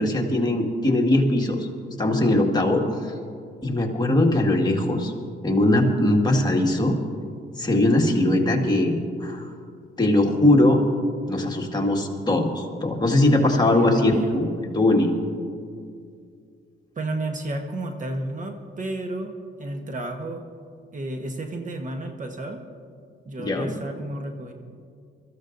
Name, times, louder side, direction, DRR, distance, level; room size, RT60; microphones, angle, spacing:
voice 1, 0.0-1.7 2.0-3.1 3.6-5.1 5.4-7.0 7.6-9.5 10.0-10.8 11.3-14.5 14.7-15.1 23.4-23.7, left 1 dB, 20° left, 0 dB, 1.9 m, -20 dB
voice 2, 13.7-14.4 17.0-19.3 19.6-20.4 20.9-22.6 23.2-24.5, right 2 dB, 40° right, 4 dB, 1.2 m, -32 dB
23.5 x 14.5 x 2.6 m, 2.2 s
cardioid pair, 90°, 20 cm